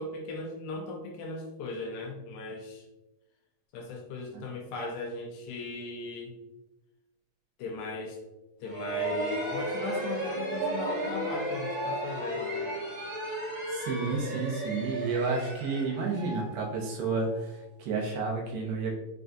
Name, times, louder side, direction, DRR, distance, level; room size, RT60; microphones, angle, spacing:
voice 1, 0.0-2.8 3.7-6.4 7.6-8.2 8.6-12.7, left 3 dB, 85° left, 0 dB, 2.0 m, -38 dB
sound 1, 8.6-17.3, right 1 dB, 55° right, 1.2 m, -34 dB
voice 2, 13.7-18.9, right 4 dB, 80° right, -1 dB, 2.5 m, -31 dB
5.9 x 2.4 x 2.6 m, 1.0 s
omnidirectional pair, 4.5 m